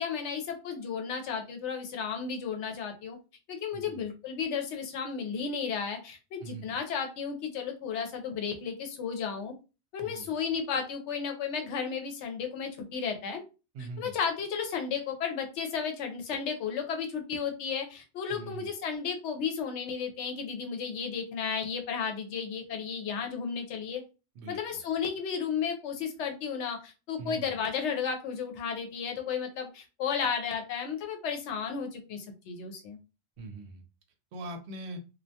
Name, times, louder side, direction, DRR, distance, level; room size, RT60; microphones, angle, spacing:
voice 1, 0.0-3.2 3.5-9.5 9.9-13.4 14.0-24.0 24.5-33.0, left 6 dB, 85° left, 5 dB, 0.9 m, -33 dB
voice 2, 3.7-4.0 6.4-6.8 10.0-10.3 13.7-14.1 18.3-18.7 24.4-24.8 27.2-27.5 33.4-33.8 34.3-35.0, right 2 dB, 75° right, 6 dB, 0.8 m, -42 dB
2.3 x 2.1 x 2.7 m, 0.31 s
omnidirectional pair, 1.2 m